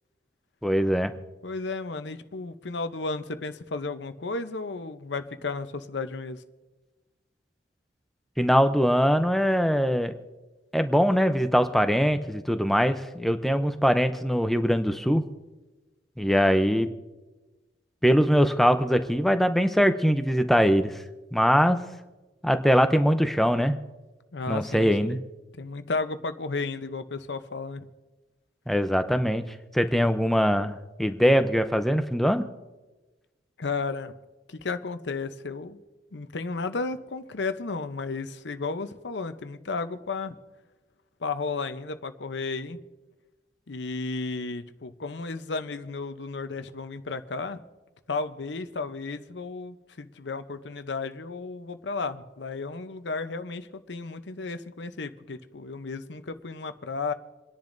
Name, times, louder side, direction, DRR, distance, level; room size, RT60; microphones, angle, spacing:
voice 1, 0.6-1.1 8.4-10.2 10.7-15.2 16.2-16.9 18.0-20.9 21.3-21.8 22.4-23.8 24.5-25.2 28.7-29.4 29.7-32.4, equal, ahead, 8 dB, 0.6 m, -22 dB
voice 2, 1.4-6.4 24.3-25.2 25.5-27.9 33.6-34.1 34.5-35.8 36.1-40.4 41.2-42.8 43.7-47.6 48.1-57.1, left 3 dB, 90° left, 10 dB, 0.8 m, -33 dB
28.5 x 10.5 x 2.6 m, 1.2 s
head